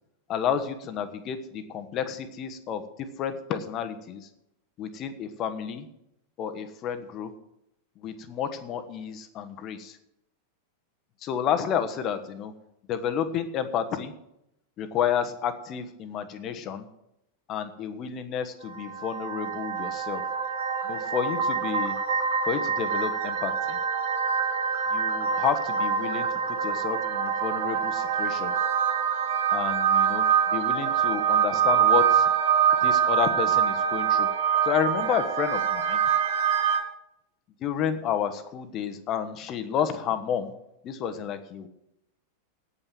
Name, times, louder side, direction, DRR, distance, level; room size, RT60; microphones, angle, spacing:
voice 1, 0.3-4.3 4.8-5.9 6.4-7.3 8.0-10.0 11.2-12.5 12.9-14.1 14.8-16.9 17.5-20.2 20.8-21.9 22.5-23.8 24.9-28.5 29.5-32.3 32.8-34.3 34.6-36.0 37.6-40.5 40.8-41.7, left 8 dB, 35° left, 9 dB, 1.2 m, -30 dB
sound 1, 18.7-36.8, right 7 dB, 55° right, 1.7 m, -25 dB
9.6 x 9.0 x 7.6 m, 0.83 s
figure-of-eight pair, 90°, 0 cm